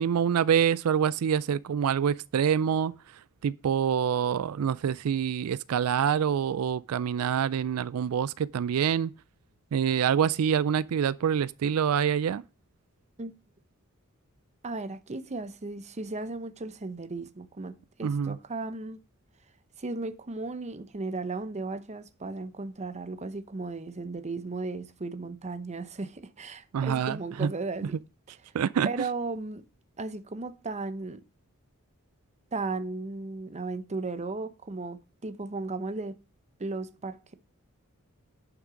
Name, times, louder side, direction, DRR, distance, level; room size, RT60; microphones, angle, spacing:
voice 1, 0.0-2.9 3.4-9.1 9.7-12.4 18.0-18.4 26.7-27.5 28.5-28.9, right 8 dB, 85° right, 0.4 m, -26 dB
voice 2, 14.6-19.0 19.8-28.0 28.8-29.6 30.0-31.2 32.5-36.1 36.6-37.3, right 3 dB, 30° right, 0.7 m, -35 dB
10.5 x 6.0 x 5.0 m
head